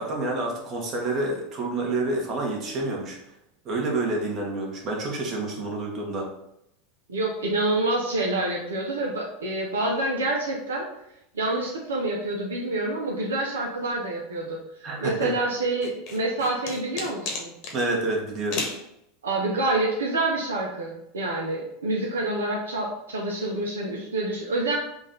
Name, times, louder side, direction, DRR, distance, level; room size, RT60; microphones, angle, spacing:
voice 1, 0.0-3.2 3.6-6.3 14.8-15.3 17.7-18.6, right 2 dB, 40° right, -1 dB, 1.3 m, -28 dB
voice 2, 7.1-10.9 11.3-14.6 15.0-17.5 19.2-24.7, right 2 dB, 85° right, -1 dB, 0.7 m, -27 dB
sound 1, 15.8-17.8 18.5-18.8, left 3 dB, 55° left, 1.0 m, -32 dB
3.9 x 2.5 x 3.8 m, 0.80 s
hypercardioid pair, 90°, 0 cm